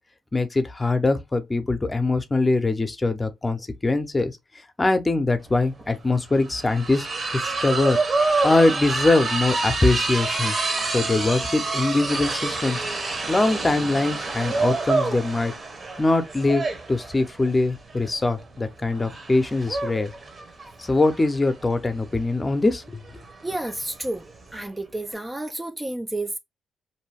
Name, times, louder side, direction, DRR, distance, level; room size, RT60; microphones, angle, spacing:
voice 1, 0.3-4.3 4.8-7.1 7.3-8.0 8.4-10.5 10.9-12.8 13.3-15.5 16.0-20.1 20.8-23.0, left 2 dB, 25° left, 0.7 m, -22 dB
sound 1, 5.5-5.6 5.8-24.7, right 3 dB, 45° right, 1.0 m, -28 dB
voice 2, 23.4-24.2 24.5-26.4, right 1 dB, 15° right, 0.4 m, -30 dB
2.7 x 2.2 x 3.3 m
supercardioid pair, 55°, 0 cm